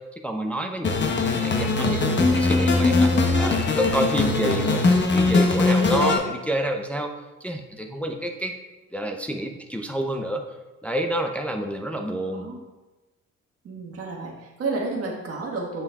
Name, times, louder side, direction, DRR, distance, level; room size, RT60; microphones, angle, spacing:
voice 1, 0.2-7.1 7.4-8.5 8.9-10.4 10.8-12.5, right 1 dB, 5° left, 3 dB, 0.5 m, -28 dB
sound 1, 0.8-6.2, left 3 dB, 40° left, 0.9 m, -21 dB
voice 2, 12.2-12.6 13.6-15.8, right 3 dB, 50° right, -3 dB, 1.5 m, -31 dB
7.0 x 6.7 x 2.3 m, 1.1 s
cardioid pair, 90°, 30 cm